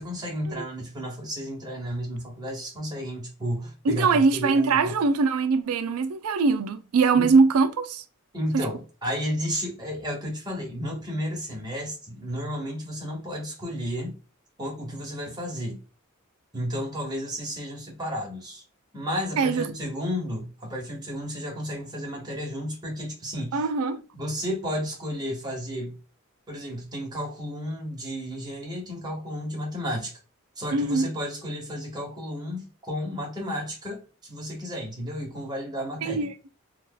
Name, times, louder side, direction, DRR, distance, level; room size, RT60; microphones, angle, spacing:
voice 1, 0.0-4.9 7.1-7.3 8.3-14.2 14.6-15.8 16.5-18.6 18.9-23.6 24.1-26.0 26.5-30.1 30.6-36.3, equal, 20° right, 1.2 m, -32 dB
voice 2, 3.8-8.0 8.5-8.7 19.4-19.8 23.5-24.0 30.7-31.1 36.0-36.3, right 4 dB, 85° right, 0.4 m, -22 dB
2.8 x 2.3 x 3.7 m
head